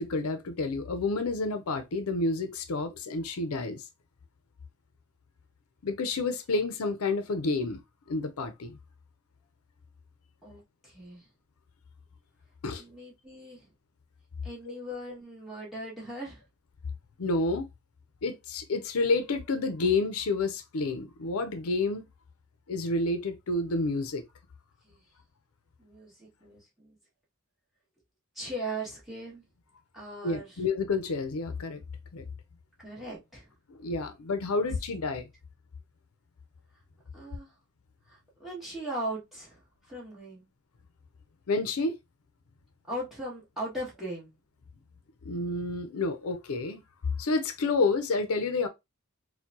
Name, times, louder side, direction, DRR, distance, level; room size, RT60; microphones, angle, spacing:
voice 1, 0.0-3.8 5.8-7.8 8.1-8.8 12.6-12.8 17.2-17.6 18.2-22.0 22.7-24.2 30.2-31.8 32.1-32.2 33.7-35.3 41.5-41.9 45.2-46.8 47.2-48.7, left 3 dB, 90° left, 0.6 m, -29 dB
voice 2, 10.4-11.3 12.8-13.7 14.4-16.4 24.8-25.0 25.8-27.0 28.3-29.4 29.9-30.6 32.8-33.5 37.1-37.5 38.1-40.5 42.9-44.3, right 1 dB, ahead, 1.6 m, -39 dB
4.4 x 2.2 x 2.6 m
head